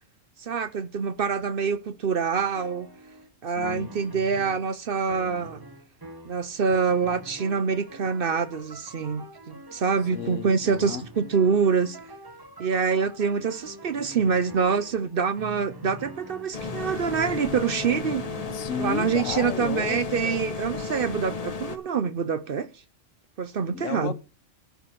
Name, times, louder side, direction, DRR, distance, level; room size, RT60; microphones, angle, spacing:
voice 1, 0.4-2.9 3.4-5.6 6.3-12.0 12.6-18.3 18.8-22.7 23.4-24.1, right 6 dB, 55° right, 0.8 m, -26 dB
sound 1, 2.6-3.3 3.6-4.7 5.1-18.9, equal, 20° right, 1.0 m, -44 dB
voice 2, 3.6-3.9 10.1-11.0 18.5-20.5 23.7-24.1, left 7 dB, 80° left, 1.2 m, -33 dB
sound 2, 16.5-21.8, left 4 dB, 35° left, 1.0 m, -33 dB
10.0 x 6.8 x 6.4 m
omnidirectional pair, 1.3 m